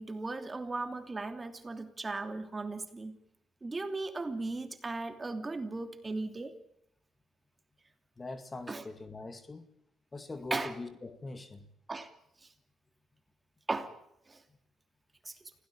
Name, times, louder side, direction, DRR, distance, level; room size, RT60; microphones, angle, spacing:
voice 1, 0.0-3.2 3.6-6.5 8.7-8.9 10.5-10.8 11.9-12.1 13.7-14.0 14.3-14.4 15.3-15.4, right 3 dB, 25° right, 2.9 m, -37 dB
voice 2, 8.2-9.6 10.1-11.7, left 3 dB, 25° left, 2.1 m, -42 dB
25.5 x 17.0 x 8.7 m
cardioid pair, 90°, 0 cm